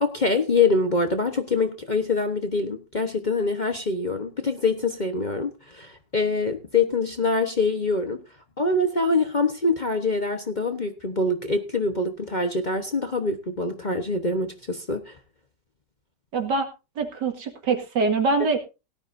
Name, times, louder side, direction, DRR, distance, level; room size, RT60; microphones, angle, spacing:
voice 1, 0.0-8.2 8.6-15.1, left 3 dB, 30° left, 6 dB, 1.0 m, -24 dB
voice 2, 16.3-16.7 17.0-18.6, right 4 dB, 75° right, 5 dB, 2.6 m, -24 dB
17.5 x 12.5 x 2.6 m, 0.29 s
omnidirectional pair, 1.9 m